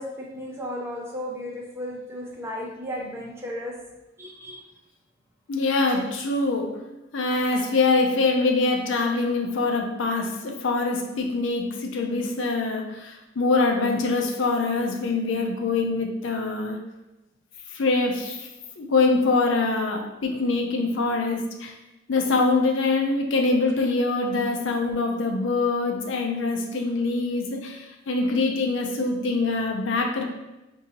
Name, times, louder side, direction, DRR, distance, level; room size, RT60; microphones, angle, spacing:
voice 1, 0.0-3.8 4.2-4.7, left 1 dB, 15° right, -2 dB, 0.6 m, -34 dB
voice 2, 5.5-6.8 7.1-16.8 17.7-18.5 18.8-21.7 22.1-30.2, left 3 dB, 75° left, 2 dB, 0.5 m, -24 dB
3.9 x 2.7 x 2.8 m, 0.97 s
head